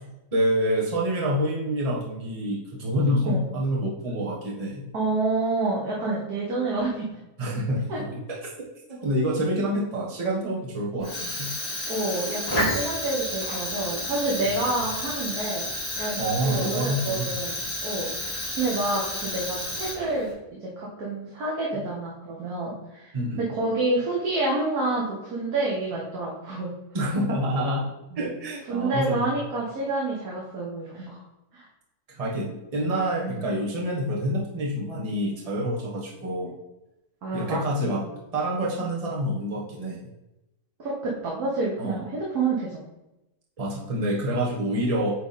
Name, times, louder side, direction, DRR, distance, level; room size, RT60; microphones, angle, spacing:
voice 1, 0.3-4.8 7.4-7.9 8.1-8.2 8.9-11.5 16.2-17.3 21.7-21.8 23.1-23.4 26.9-27.9 28.2-29.4 32.1-36.5 37.3-38.0 38.3-40.0 41.8-42.0 43.6-45.1, equal, 25° right, -4 dB, 1.3 m, -27 dB
voice 2, 4.9-7.1 7.9-8.0 11.9-15.7 16.0-20.3 20.6-26.7 28.1-28.3 28.7-31.2 31.5-31.7 33.2-33.3 37.2-38.1 40.8-42.8, right 2 dB, 75° right, -5 dB, 1.8 m, -28 dB
Fire, 11.0-20.3, left 1 dB, 65° left, 2.7 m, -31 dB
8.6 x 3.4 x 4.2 m, 0.93 s
omnidirectional pair, 1.6 m